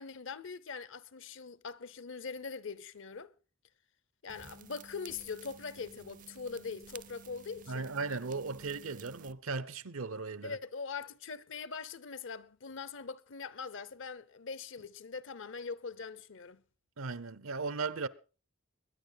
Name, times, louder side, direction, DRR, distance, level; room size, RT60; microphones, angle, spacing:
voice 1, 0.0-3.3 4.2-7.9 10.4-16.6, left 5 dB, 60° left, 0.8 m, -42 dB
sound 1, 4.3-9.3, right 6 dB, 40° right, 0.6 m, -53 dB
voice 2, 7.7-10.6 17.0-18.1, right 4 dB, 75° right, 0.8 m, -37 dB
22.0 x 10.0 x 4.0 m
head